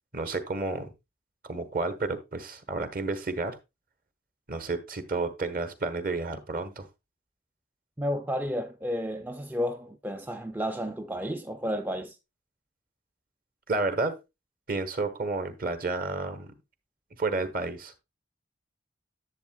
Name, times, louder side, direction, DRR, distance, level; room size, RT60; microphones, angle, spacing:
voice 1, 0.1-0.9 1.4-3.6 4.5-6.9 13.7-14.2 14.7-16.5 17.2-17.9, right 3 dB, 50° right, 1.2 m, -31 dB
voice 2, 8.0-12.2, equal, 10° right, 0.4 m, -32 dB
10.5 x 7.7 x 2.3 m
head